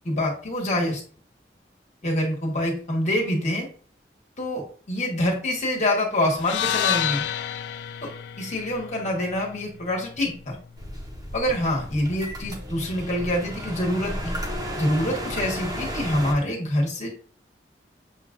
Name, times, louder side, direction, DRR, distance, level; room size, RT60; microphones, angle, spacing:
voice 1, 0.0-1.0 2.0-3.7 4.4-7.2 8.0-8.1 8.4-10.6 11.3-14.3 14.8-17.1, left 1 dB, 40° left, -2 dB, 1.4 m, -26 dB
sound 1, 6.4-10.6, left 10 dB, 80° left, 0.3 m, -30 dB
sound 2, 10.8-16.3, equal, 20° right, 0.8 m, -33 dB
7.1 x 2.4 x 2.5 m, 0.44 s
head